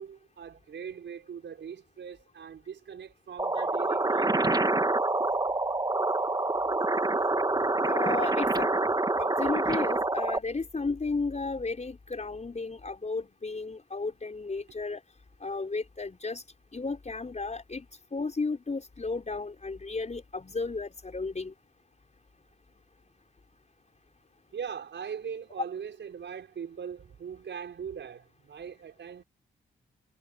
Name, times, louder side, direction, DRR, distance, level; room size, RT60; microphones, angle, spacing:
voice 1, 0.0-4.4 24.5-29.2, right 7 dB, 65° right, 5.4 m, -40 dB
sound 1, 3.4-10.4, right 2 dB, 20° right, 1.5 m, -26 dB
voice 2, 7.8-8.8 9.2-15.0 15.4-16.4 16.7-17.9 18.1-21.5, left 3 dB, 35° left, 5.4 m, -33 dB
supercardioid pair, 45°, 20 cm